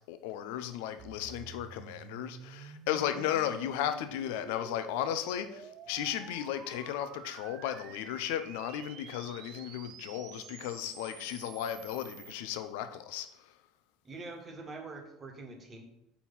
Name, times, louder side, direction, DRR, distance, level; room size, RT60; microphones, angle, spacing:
voice 1, 0.1-13.3, left 10 dB, 75° left, 10 dB, 0.5 m, -35 dB
sound 1, 1.0-12.3, right 8 dB, 50° right, 0.5 m, -50 dB
voice 2, 14.0-15.8, right 3 dB, 35° right, 3 dB, 1.4 m, -44 dB
4.6 x 4.2 x 5.5 m, 0.79 s
hypercardioid pair, 80°, 0 cm